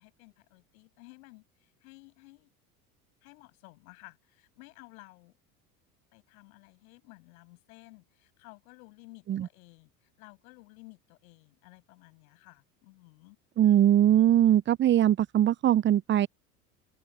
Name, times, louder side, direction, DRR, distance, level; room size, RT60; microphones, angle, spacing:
voice 1, 0.0-2.5 3.2-5.4 6.1-13.4, left 25 dB, 65° left, 7.6 m, -54 dB
voice 2, 13.6-16.3, right 11 dB, 25° right, 0.6 m, -21 dB
open air
hypercardioid pair, 75°, 46 cm